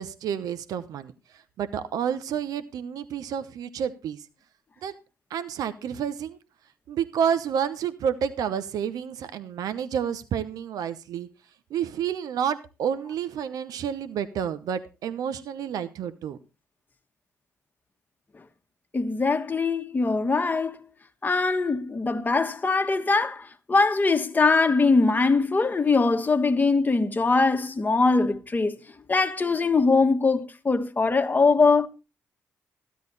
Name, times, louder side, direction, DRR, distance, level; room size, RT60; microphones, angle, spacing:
voice 1, 0.0-4.3 4.8-4.9 5.3-6.4 6.9-11.3 11.7-16.4, right 8 dB, 75° right, 0.9 m, -30 dB
voice 2, 18.9-20.9 21.2-28.8 29.1-31.9, left 3 dB, 30° left, 1.3 m, -22 dB
13.0 x 10.5 x 4.1 m
supercardioid pair, 65°, 6 cm